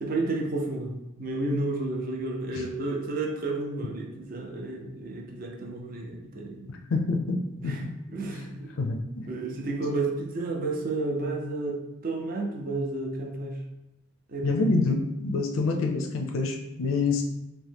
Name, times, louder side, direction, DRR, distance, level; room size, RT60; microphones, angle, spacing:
voice 1, 0.0-6.7 7.6-7.8 8.1-8.8 9.2-13.6 14.3-14.6, right 2 dB, 45° right, 0 dB, 0.4 m, -31 dB
voice 2, 6.7-7.9 8.8-9.2 14.4-17.2, left 3 dB, 80° left, 2 dB, 0.4 m, -27 dB
2.8 x 2.1 x 3.3 m, 0.89 s
head